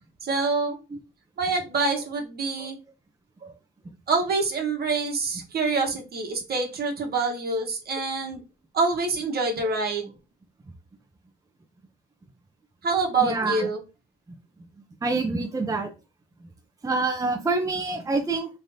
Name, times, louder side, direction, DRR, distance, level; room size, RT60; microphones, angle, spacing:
voice 1, 0.2-0.8 1.4-2.8 3.4-3.5 4.1-8.4 8.7-10.1 12.8-13.8, right 3 dB, 50° right, 2 dB, 1.2 m, -26 dB
voice 2, 13.2-13.7 15.0-15.9 16.8-18.5, right 3 dB, 15° right, 3 dB, 0.7 m, -26 dB
3.8 x 3.3 x 2.7 m, 0.29 s
cardioid pair, 90°, 20 cm